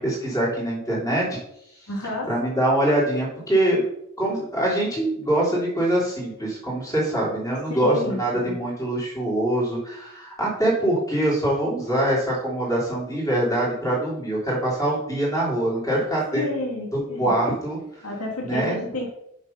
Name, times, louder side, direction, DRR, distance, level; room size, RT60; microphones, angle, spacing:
voice 1, 0.0-1.4 2.3-3.8 4.2-16.4 16.9-17.8 18.4-18.8, right 1 dB, 15° left, -5 dB, 3.1 m, -24 dB
voice 2, 1.9-2.3 7.7-8.6 16.3-17.4 18.0-19.1, left 1 dB, 85° left, 0 dB, 2.0 m, -30 dB
7.1 x 5.3 x 5.5 m, 0.76 s
head